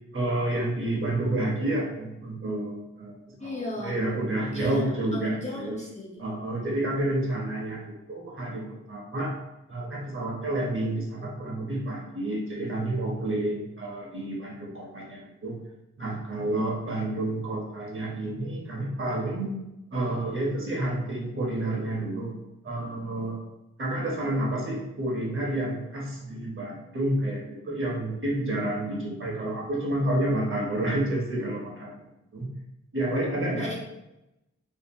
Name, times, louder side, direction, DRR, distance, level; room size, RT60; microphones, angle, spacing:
voice 1, 0.1-5.7 6.2-9.3 9.7-15.6 16.0-19.5 19.9-22.3 22.6-23.4 23.8-32.0 32.3-32.5 32.9-33.8, right 1 dB, 45° right, -3 dB, 0.8 m, -29 dB
voice 2, 3.4-4.0 4.5-4.8 5.1-6.2 33.6-33.8, left 1 dB, 25° left, -3 dB, 0.4 m, -35 dB
2.8 x 2.1 x 2.6 m, 0.93 s
wide cardioid pair, 130°, 30 cm